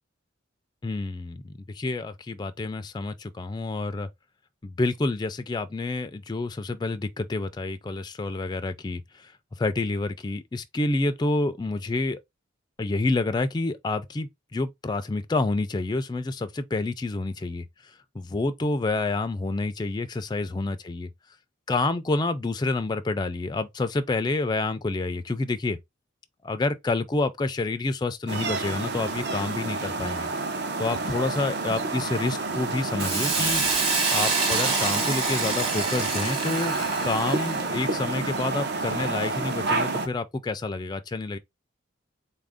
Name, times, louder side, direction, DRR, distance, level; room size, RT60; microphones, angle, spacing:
voice 1, 0.8-4.1 4.6-12.2 12.8-21.1 21.7-25.8 26.4-30.3 30.8-33.6 34.1-36.7 37.0-41.4, left 2 dB, 20° left, 0.3 m, -28 dB
sound 1, 28.3-40.1, right 3 dB, 55° right, 0.7 m, -29 dB
Hiss, 33.0-37.7, right 4 dB, 25° right, 1.2 m, -27 dB
4.0 x 2.5 x 3.5 m
head